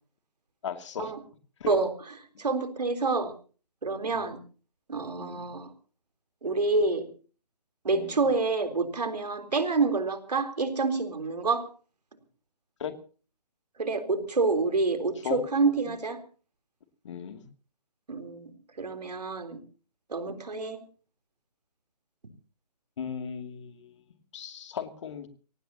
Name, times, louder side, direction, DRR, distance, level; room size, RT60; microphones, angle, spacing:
voice 1, 0.6-1.1 1.6-1.7 4.1-4.3 5.2-5.5 7.9-8.2 12.8-12.9 15.2-15.4 15.8-16.0 17.0-17.5 23.0-23.9 24.3-25.3, left 7 dB, 45° left, 7 dB, 2.7 m, -37 dB
voice 2, 2.4-3.3 3.8-4.4 4.9-5.7 6.4-7.1 7.8-11.7 13.8-16.2 18.1-18.5 18.8-19.6 20.1-20.8, right 3 dB, 70° right, 8 dB, 3.8 m, -27 dB
24.0 x 18.5 x 2.9 m, 0.38 s
figure-of-eight pair, 145°, 21 cm